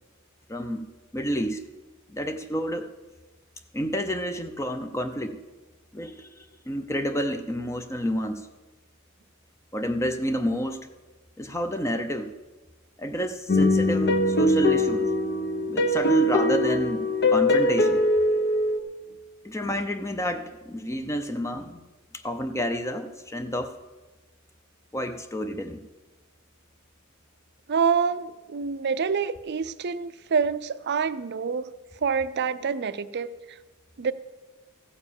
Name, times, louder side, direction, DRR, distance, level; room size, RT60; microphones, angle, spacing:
voice 1, 0.5-0.9 1.1-1.6 2.1-2.9 3.7-5.4 5.9-8.5 9.7-10.9 11.4-12.3 13.0-15.1 15.7-18.0 19.4-21.9 22.1-23.7 24.9-25.8, equal, 15° left, 7 dB, 0.6 m, -29 dB
sound 1, 13.5-18.8, left 1 dB, 55° left, 1.0 m, -22 dB
voice 2, 27.7-31.7 32.0-33.6 34.0-34.1, right 6 dB, 55° right, 14 dB, 0.5 m, -27 dB
15.0 x 7.1 x 7.0 m, 1.2 s
head